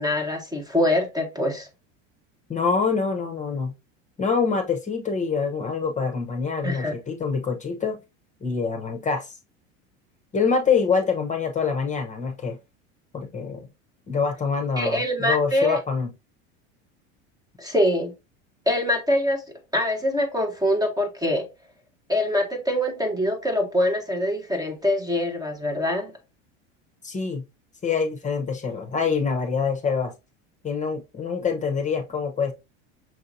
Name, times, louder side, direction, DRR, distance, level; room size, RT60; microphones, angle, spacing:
voice 1, 0.0-1.7 6.6-6.9 14.8-15.8 17.6-18.1 18.7-19.4 19.7-21.5 22.1-26.1, left 1 dB, 10° right, 0.8 m, -24 dB
voice 2, 2.5-3.7 4.2-8.0 8.4-9.3 10.3-12.6 13.1-13.7 14.1-16.1 27.0-27.4 27.8-30.1 30.6-32.5, left 5 dB, 20° left, 0.8 m, -25 dB
6.0 x 2.7 x 2.6 m
supercardioid pair, 110°, 35 cm